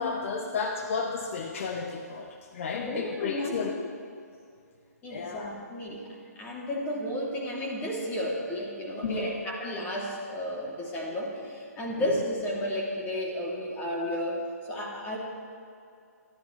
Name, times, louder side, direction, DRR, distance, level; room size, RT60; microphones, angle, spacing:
voice 1, 0.0-3.9 5.1-5.6 9.0-9.3 11.1-11.2 12.0-12.1, left 5 dB, 50° left, 2 dB, 1.1 m, -32 dB
voice 2, 2.7-3.8 5.0-14.4 14.7-15.2, equal, 20° left, -3 dB, 3.1 m, -33 dB
26.5 x 13.0 x 3.4 m, 2.4 s
figure-of-eight pair, 135°, 9 cm